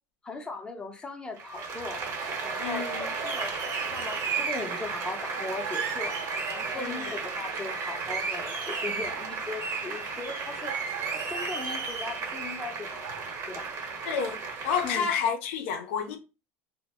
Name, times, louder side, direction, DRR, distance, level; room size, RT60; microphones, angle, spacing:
voice 1, 0.2-2.0 2.4-3.5 3.9-6.2 6.5-10.8 11.3-13.1 13.5-13.7 14.8-15.1, left 3 dB, 10° left, 0.6 m, -38 dB
Applause, 1.4-15.0, right 5 dB, 45° right, 1.0 m, -33 dB
voice 2, 2.6-3.1 6.8-7.0 14.0-16.2, left 6 dB, 80° left, 0.5 m, -30 dB
2.0 x 2.0 x 3.4 m
supercardioid pair, 110°, 7 cm